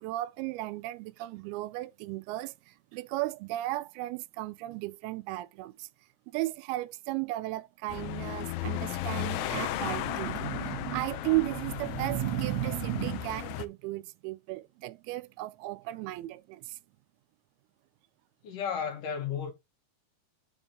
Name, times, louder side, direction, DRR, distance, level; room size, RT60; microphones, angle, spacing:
voice 1, 0.0-5.9 6.3-16.8, right 18 dB, 85° right, 2.5 m, -34 dB
sound 1, 7.9-13.7, left 14 dB, 80° left, 2.3 m, -35 dB
voice 2, 18.4-19.5, left 7 dB, 65° left, 2.8 m, -33 dB
9.5 x 3.7 x 3.6 m
omnidirectional pair, 4.4 m